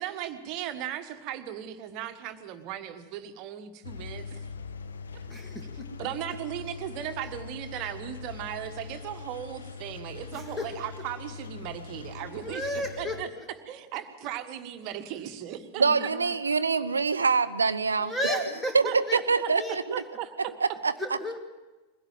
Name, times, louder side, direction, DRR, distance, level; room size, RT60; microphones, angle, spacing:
voice 1, 0.0-4.4 6.0-13.3 13.6-16.1 18.2-18.4 18.8-19.5 19.9-20.5, right 11 dB, 40° right, 8 dB, 1.5 m, -37 dB
Engine, 3.8-13.2, left 5 dB, 70° left, 1.0 m, -42 dB
voice 2, 5.3-5.9 10.3-10.8 12.4-13.5 15.8-16.4 18.0-19.2 19.5-20.0 21.0-21.4, left 1 dB, 10° left, 5 dB, 2.0 m, -34 dB
voice 3, 15.8-18.1 18.7-19.8 20.8-20.9, right 4 dB, 75° right, 15 dB, 0.8 m, -24 dB
22.5 x 16.5 x 7.6 m, 1.2 s
figure-of-eight pair, 90°, 0 cm